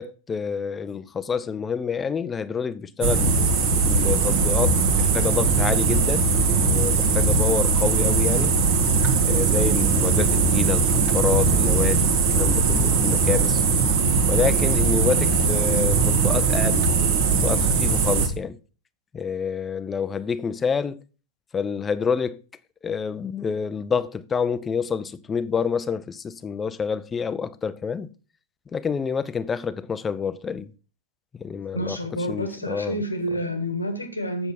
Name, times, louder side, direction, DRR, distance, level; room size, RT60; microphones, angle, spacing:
voice 1, 0.0-3.3 3.8-8.5 9.2-13.6 14.3-16.9 17.3-18.6 19.1-21.0 21.5-22.4 22.8-28.1 28.7-30.7 31.4-32.0 32.3-33.0, left 6 dB, 20° left, 0.5 m, -27 dB
sound 1, 3.0-18.3, right 4 dB, 50° right, 1.5 m, -20 dB
voice 2, 31.7-34.5, equal, 80° left, 1.4 m, -29 dB
8.2 x 6.7 x 4.1 m
figure-of-eight pair, 90°, 0 cm